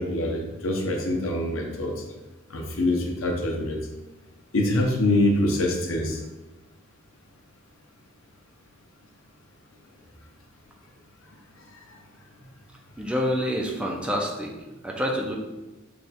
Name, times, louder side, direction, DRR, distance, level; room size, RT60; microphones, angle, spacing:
voice 1, 0.0-1.9 2.5-3.8 4.5-6.2, left 1 dB, 70° left, 1 dB, 0.7 m, -24 dB
voice 2, 13.0-14.5 14.8-15.4, equal, 5° right, -1 dB, 0.4 m, -27 dB
3.4 x 2.3 x 4.0 m, 1.1 s
head